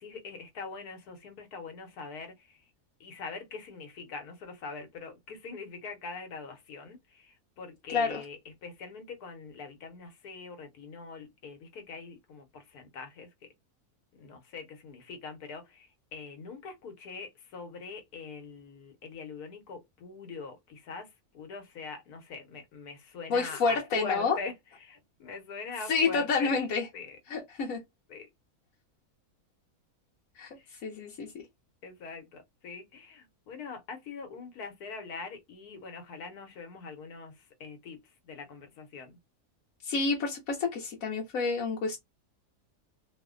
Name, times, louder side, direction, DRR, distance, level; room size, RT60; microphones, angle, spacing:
voice 1, 0.0-2.7 3.0-13.5 14.1-26.6 26.9-27.2 28.1-28.3 30.6-30.9 31.8-39.2, left 4 dB, 90° left, 1.4 m, -43 dB
voice 2, 7.9-8.2 23.3-24.4 25.9-26.9 27.3-27.8 30.4-30.5 30.8-31.3 39.8-42.0, left 4 dB, 70° left, 1.2 m, -29 dB
3.0 x 2.1 x 3.6 m
omnidirectional pair, 1.6 m